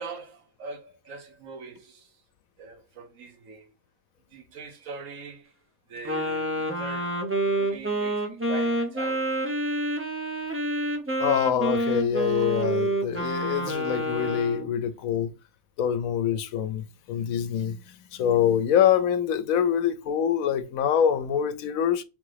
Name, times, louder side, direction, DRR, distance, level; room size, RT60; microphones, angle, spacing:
voice 1, 0.0-2.1 2.6-3.7 4.3-5.5 5.9-9.3 12.3-12.5, right 4 dB, 75° right, 1.3 m, -42 dB
Wind instrument woodwind instrument, 6.0-14.7, right 1 dB, 15° right, 0.5 m, -28 dB
voice 2, 11.2-15.3 15.8-22.0, left 9 dB, 85° left, 1.0 m, -25 dB
3.7 x 3.5 x 3.3 m
omnidirectional pair, 1.4 m